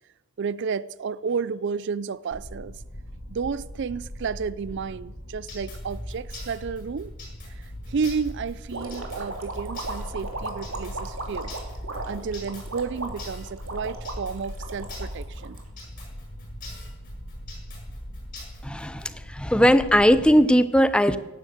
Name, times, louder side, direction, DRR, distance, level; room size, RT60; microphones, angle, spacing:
voice 1, 0.4-2.8 3.3-7.1 7.6-11.5 12.0-15.6, right 5 dB, 60° right, 0.4 m, -31 dB
sound 1, 2.3-20.3, equal, 75° left, 2.3 m, -39 dB
sound 2, 5.5-19.0, left 3 dB, 40° left, 7.7 m, -45 dB
sound 3, 8.7-16.0, right 2 dB, 80° right, 2.7 m, -36 dB
voice 2, 18.6-21.2, equal, 5° left, 0.6 m, -19 dB
17.0 x 10.0 x 7.9 m
head